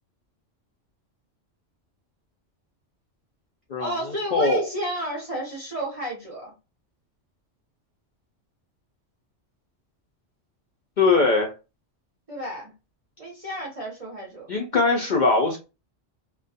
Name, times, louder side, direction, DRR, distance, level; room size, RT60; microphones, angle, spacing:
voice 1, 3.8-6.5 12.3-12.7 13.2-14.5, right 1 dB, 35° right, -3 dB, 0.6 m, -31 dB
voice 2, 4.3-4.6 11.0-11.5 14.5-15.6, left 3 dB, 55° left, -1 dB, 0.5 m, -20 dB
2.3 x 2.2 x 2.6 m, 0.29 s
omnidirectional pair, 1.3 m